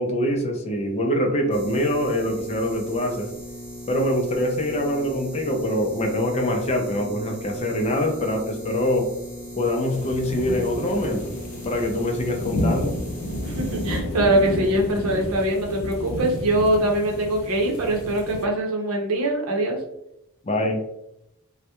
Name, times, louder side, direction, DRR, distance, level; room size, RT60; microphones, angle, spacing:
voice 1, 0.0-3.3 3.9-9.1 9.6-11.4 11.7-13.0 20.4-20.8, left 1 dB, 30° left, 2 dB, 0.4 m, -24 dB
sound 1, 1.5-14.0, equal, 5° right, 0.7 m, -38 dB
sound 2, 9.9-18.5, left 1 dB, 90° left, 0.5 m, -31 dB
voice 2, 13.4-19.8, right 1 dB, 70° right, 1 dB, 0.6 m, -23 dB
2.2 x 2.1 x 2.8 m, 0.82 s
head